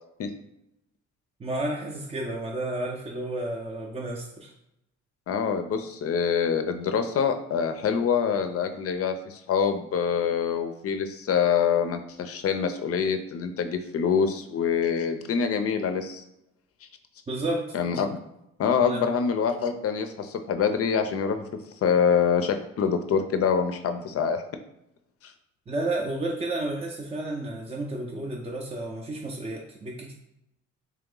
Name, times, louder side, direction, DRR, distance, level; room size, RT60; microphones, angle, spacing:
voice 1, 1.4-4.5 17.3-17.8 18.8-19.1 25.7-30.1, right 2 dB, 20° right, -1 dB, 0.5 m, -31 dB
voice 2, 5.3-16.2 17.7-18.2 18.6-21.4 21.8-24.4 25.2-25.3, left 7 dB, 50° left, 8 dB, 0.5 m, -25 dB
3.3 x 2.9 x 3.7 m, 0.86 s
cardioid pair, 90°, 30 cm